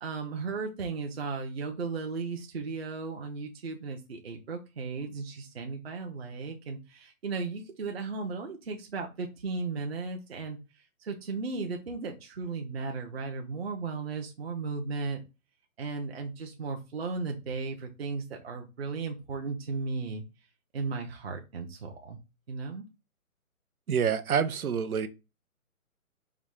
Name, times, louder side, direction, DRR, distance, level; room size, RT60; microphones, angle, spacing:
voice 1, 0.0-15.2 15.8-20.2 20.7-22.2 22.5-22.8, right 4 dB, 45° right, 0.8 m, -35 dB
voice 2, 23.9-25.1, right 7 dB, 75° right, 0.9 m, -27 dB
4.8 x 2.8 x 3.6 m
hypercardioid pair, 170°, 43 cm